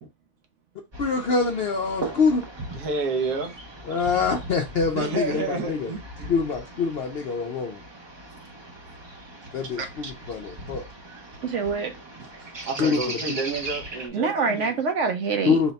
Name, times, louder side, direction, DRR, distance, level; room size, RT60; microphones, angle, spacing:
sound 1, 0.9-14.1, right 2 dB, 35° right, 0.4 m, -39 dB
voice 1, 1.0-2.4 3.9-5.9 6.3-7.8 9.5-10.8 12.8-13.0 15.5-15.7, left 5 dB, 60° left, 0.6 m, -25 dB
voice 2, 2.7-3.6 4.9-6.4 11.1-11.4 12.2-14.8, right 3 dB, 80° right, 1.4 m, -31 dB
voice 3, 9.8-10.1 11.4-11.9 14.1-15.6, right 5 dB, 60° right, 0.9 m, -26 dB
4.1 x 2.2 x 3.9 m
omnidirectional pair, 1.6 m